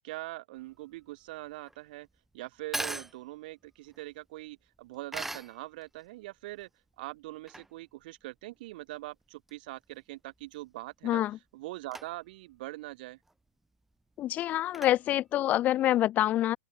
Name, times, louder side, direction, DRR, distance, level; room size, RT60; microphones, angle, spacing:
voice 1, 0.0-2.1 2.3-6.7 7.0-11.2 11.5-13.2, right 19 dB, 50° right, 5.5 m, -42 dB
sound 1, 0.5-16.0, right 2 dB, 5° right, 2.9 m, -44 dB
voice 2, 11.0-11.4 14.2-16.6, left 13 dB, 25° left, 1.6 m, -26 dB
open air
hypercardioid pair, 145°, 6 cm